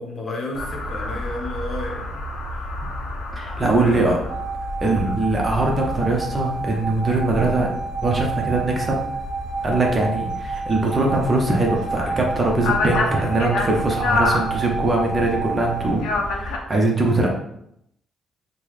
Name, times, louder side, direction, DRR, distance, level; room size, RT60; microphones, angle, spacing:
voice 1, 0.0-2.3 3.7-4.1, left 2 dB, 45° left, 1 dB, 0.8 m, -32 dB
sound 1, 0.5-16.6, left 2 dB, 85° left, 0.5 m, -29 dB
voice 2, 3.4-4.2 4.8-7.7 8.0-9.0 9.6-17.3, right 2 dB, 30° right, 0 dB, 0.8 m, -22 dB
sound 2, 4.3-16.0, right 5 dB, 85° right, 0.6 m, -30 dB
3.7 x 2.2 x 3.1 m, 0.76 s
cardioid pair, 90°, 0 cm